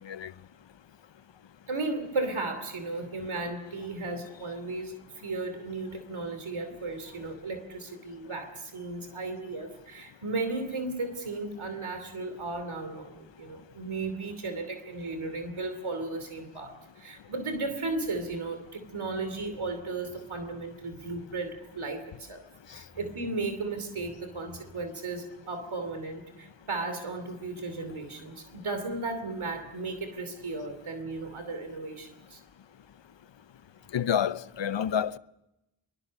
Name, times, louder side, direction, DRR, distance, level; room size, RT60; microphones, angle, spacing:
voice 1, 1.7-32.4, right 3 dB, 80° right, 2.9 m, -35 dB
voice 2, 33.9-35.2, left 9 dB, 65° left, 0.7 m, -28 dB
23.5 x 23.0 x 6.4 m
cardioid pair, 50°, 48 cm